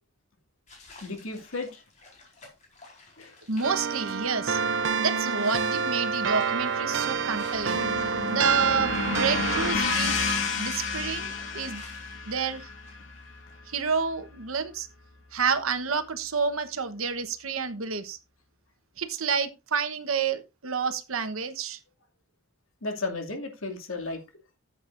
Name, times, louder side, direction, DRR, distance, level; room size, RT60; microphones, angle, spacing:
sound 1, 0.7-13.6, left 3 dB, 35° left, 4.5 m, -50 dB
voice 1, 1.0-1.8 3.2-3.3 8.0-8.2 22.8-24.2, left 3 dB, 90° left, 2.5 m, -34 dB
voice 2, 3.5-4.6 5.0-7.8 8.3-10.2 10.6-11.8 12.3-12.7 13.7-14.9 15.3-18.2 19.0-21.8, right 5 dB, 90° right, 1.2 m, -29 dB
sound 2, 3.6-9.7, right 5 dB, 60° right, 0.6 m, -28 dB
sound 3, 7.1-15.4, left 4 dB, 65° left, 2.5 m, -32 dB
14.0 x 8.0 x 2.6 m
head